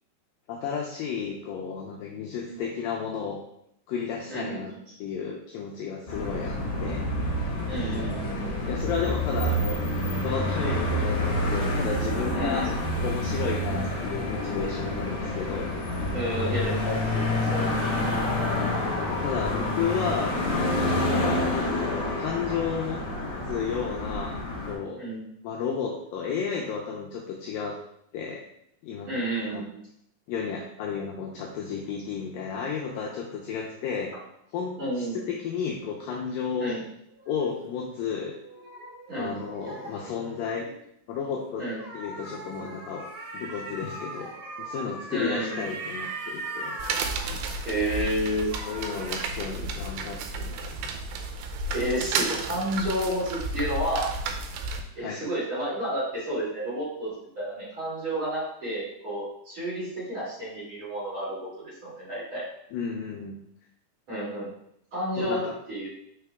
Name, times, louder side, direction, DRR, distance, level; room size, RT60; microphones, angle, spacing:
voice 1, 0.5-3.4 3.9-4.7 5.0-7.1 8.7-9.8 10.2-12.7 13.0-15.8 19.1-21.4 21.9-23.0 23.5-24.4 24.7-25.0 25.4-27.8 28.1-28.4 28.8-29.1 29.5-29.6 30.3-34.1 34.5-36.8 37.3-38.3 39.1-40.7 41.1-41.7 41.9-43.1 43.3-44.3 44.6-46.8 48.6-50.9 55.0-55.2 62.7-63.4 65.2-65.5, left 6 dB, 85° left, -1 dB, 2.0 m, -32 dB
voice 2, 4.3-4.6 7.7-8.5 12.3-12.7 16.1-18.1 25.0-25.2 29.1-29.8 34.8-35.3 36.6-36.8 39.1-39.3 41.6-41.8 45.1-45.6 47.6-49.0 51.7-54.1 54.9-62.4 64.1-64.5 64.9-65.4 65.7-65.9, right 1 dB, 35° right, -9 dB, 2.9 m, -31 dB
sound 1, 6.1-24.8, left 1 dB, 60° left, 2.2 m, -28 dB
sound 2, 36.1-40.8 41.6-48.2 48.5-49.2, right 2 dB, 60° right, 2.3 m, -40 dB
sound 3, 46.8-54.8, right 3 dB, 90° right, 2.8 m, -32 dB
6.0 x 4.7 x 3.5 m, 0.73 s
omnidirectional pair, 4.7 m